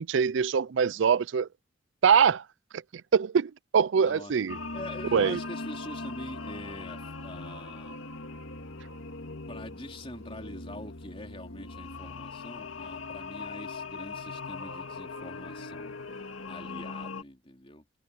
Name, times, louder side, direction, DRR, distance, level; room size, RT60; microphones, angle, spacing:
voice 1, 0.0-1.5 2.0-2.4 3.1-4.6 5.1-5.4, right 6 dB, 70° right, 0.4 m, -23 dB
voice 2, 4.0-4.3 4.7-8.1 9.5-15.9 16.5-17.8, left 1 dB, 30° left, 3.7 m, -44 dB
sound 1, 4.5-17.2, left 3 dB, 85° left, 2.4 m, -40 dB
head